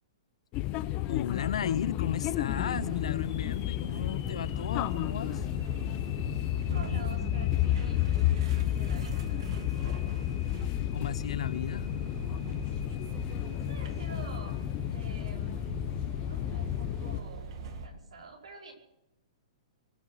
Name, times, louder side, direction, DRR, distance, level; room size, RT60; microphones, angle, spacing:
sound 1, 0.5-17.2, left 15 dB, 35° left, 0.8 m, -32 dB
voice 1, 1.1-5.5 10.9-11.9, left 8 dB, 75° left, 0.6 m, -35 dB
sound 2, 2.5-17.9, right 4 dB, 60° right, 2.3 m, -41 dB
sound 3, 3.2-15.3, left 8 dB, 55° left, 3.1 m, -54 dB
voice 2, 6.3-8.1 8.7-9.7 13.0-14.6 14.9-15.9 16.2-17.5 17.8-18.7, right 4 dB, 85° right, 5.1 m, -48 dB
23.5 x 8.5 x 6.4 m
hypercardioid pair, 135°, 3 cm